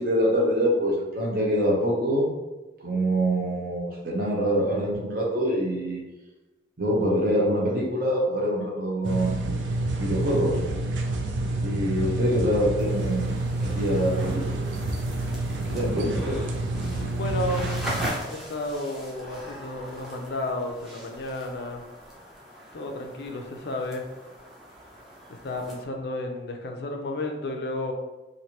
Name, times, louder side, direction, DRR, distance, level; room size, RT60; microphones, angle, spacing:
voice 1, 0.0-2.3 2.8-6.0 6.8-9.7 10.0-10.6 11.6-14.6 15.6-16.3, equal, 50° right, -2 dB, 0.8 m, -25 dB
sound 1, 9.0-18.1, right 2 dB, 85° right, 0.4 m, -28 dB
sound 2, 12.8-25.8, equal, ahead, 0.6 m, -40 dB
voice 2, 16.8-17.7 18.3-21.8 22.7-24.0 25.3-27.9, left 2 dB, 65° left, 3 dB, 0.4 m, -32 dB
3.2 x 2.5 x 2.8 m, 1.1 s
head